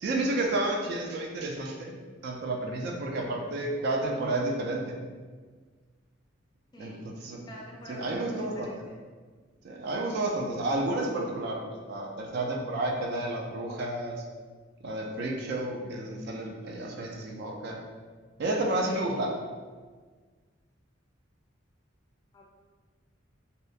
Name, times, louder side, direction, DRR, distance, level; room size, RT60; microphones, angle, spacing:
voice 1, 0.0-2.0 2.2-4.9 6.8-7.5 7.9-8.7 9.6-14.2 14.8-17.8 18.4-19.3, right 2 dB, 55° right, 0 dB, 0.3 m, -31 dB
voice 2, 7.5-8.9 22.3-22.5, equal, 20° left, -3 dB, 0.3 m, -46 dB
2.8 x 2.1 x 2.4 m, 1.5 s
head